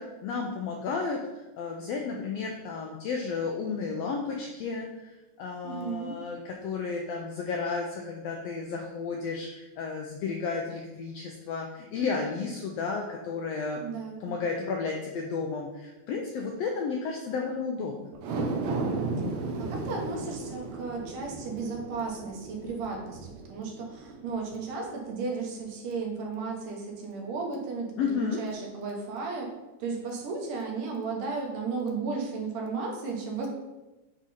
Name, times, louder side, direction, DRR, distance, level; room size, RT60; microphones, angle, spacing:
voice 1, 0.0-13.8 14.2-18.1 28.0-28.4, left 4 dB, 85° left, 1 dB, 1.4 m, -33 dB
voice 2, 5.6-6.1 13.8-14.3 19.4-27.9 28.2-29.5 29.8-33.5, right 4 dB, 85° right, 0 dB, 2.7 m, -34 dB
sound 1, 18.1-24.6 25.1-25.2, right 3 dB, 70° right, 1.8 m, -34 dB
7.9 x 3.8 x 4.2 m, 1.1 s
omnidirectional pair, 3.6 m